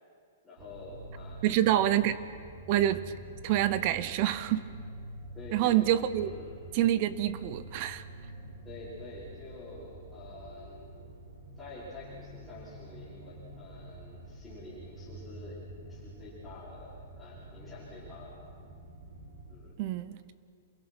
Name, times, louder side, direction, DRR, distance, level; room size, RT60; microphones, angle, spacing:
voice 1, 0.4-1.7 5.3-5.9 6.2-6.6 8.6-10.9 11.6-18.4 19.5-19.8, left 2 dB, 5° left, -14 dB, 4.7 m, -48 dB
sound 1, 0.6-19.6, right 1 dB, 85° right, 7.0 m, -47 dB
voice 2, 1.4-2.2 2.7-3.1 3.4-4.7 5.5-6.3 6.7-8.0 19.8-20.3, right 12 dB, 30° right, 15 dB, 0.8 m, -27 dB
28.5 x 21.5 x 6.2 m, 2.2 s
hypercardioid pair, 175°, 0 cm